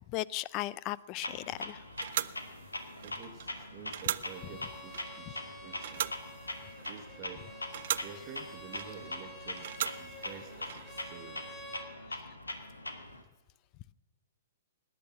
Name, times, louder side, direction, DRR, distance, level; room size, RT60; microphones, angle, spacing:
voice 1, 0.1-1.8 7.9-8.0 12.1-12.2, left 16 dB, 35° left, 0.4 m, -37 dB
Clock, 1.2-13.2, left 2 dB, 85° left, 1.6 m, -42 dB
sound 1, 1.3-11.5, right 11 dB, 55° right, 0.5 m, -40 dB
voice 2, 3.0-6.1 6.8-7.6 8.0-11.4, right 7 dB, 35° right, 1.3 m, -50 dB
Bowed string instrument, 4.3-11.9, equal, 10° left, 2.4 m, -50 dB
17.5 x 10.5 x 7.3 m
figure-of-eight pair, 115°, 0 cm